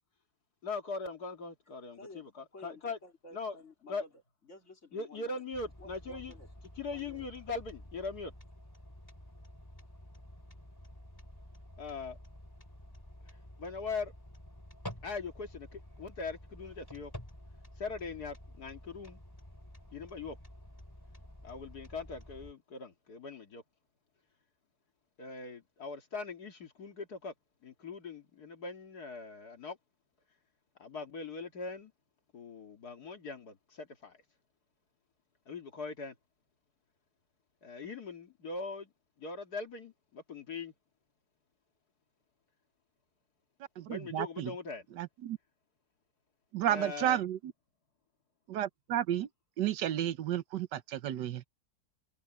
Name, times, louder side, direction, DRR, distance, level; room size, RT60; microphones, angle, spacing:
voice 1, 0.6-3.0 3.3-3.6 3.9-4.0 4.9-6.3 6.8-8.3 11.8-12.2 13.6-14.1 15.0-17.1 17.8-19.2 19.9-20.4 21.4-23.6 25.2-27.3 27.6-29.8 30.8-31.9 32.3-34.2 35.5-36.1 37.6-38.9 39.2-40.7 43.9-44.8 46.7-47.2, left 4 dB, 65° left, 2.6 m, -41 dB
voice 2, 2.5-4.1 4.4-5.4 5.8-6.5 6.9-7.2, left 2 dB, 40° left, 3.9 m, -53 dB
sound 1, 5.5-22.5, left 1 dB, 10° left, 3.5 m, -51 dB
voice 3, 43.8-44.5 44.9-45.4 46.5-47.5 48.5-49.3 49.6-51.4, right 11 dB, 80° right, 1.4 m, -32 dB
omnidirectional pair, 1.8 m